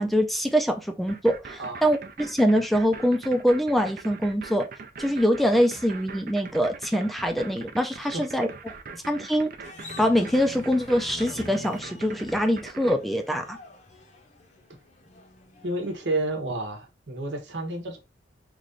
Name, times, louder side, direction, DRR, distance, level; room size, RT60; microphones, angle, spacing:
voice 1, 0.0-4.7 5.0-8.5 9.1-9.5 10.0-13.6, equal, ahead, 0.4 m, -24 dB
sound 1, 1.1-13.0, right 4 dB, 50° right, 0.5 m, -41 dB
sound 2, 9.6-16.3, left 3 dB, 40° left, 0.7 m, -45 dB
voice 2, 15.6-18.0, right 2 dB, 80° right, 1.0 m, -30 dB
3.2 x 2.5 x 3.7 m
head